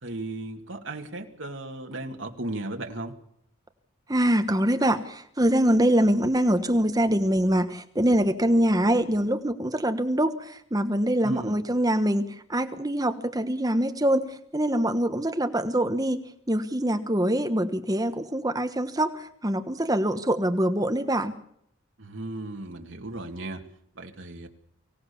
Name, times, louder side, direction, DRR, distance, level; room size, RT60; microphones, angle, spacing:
voice 1, 0.0-3.2 11.2-11.6 22.0-23.6 23.9-24.5, right 2 dB, 60° right, 3 dB, 2.5 m, -36 dB
voice 2, 4.1-21.3, right 1 dB, 15° right, 8 dB, 1.1 m, -24 dB
24.0 x 17.0 x 7.1 m, 0.69 s
head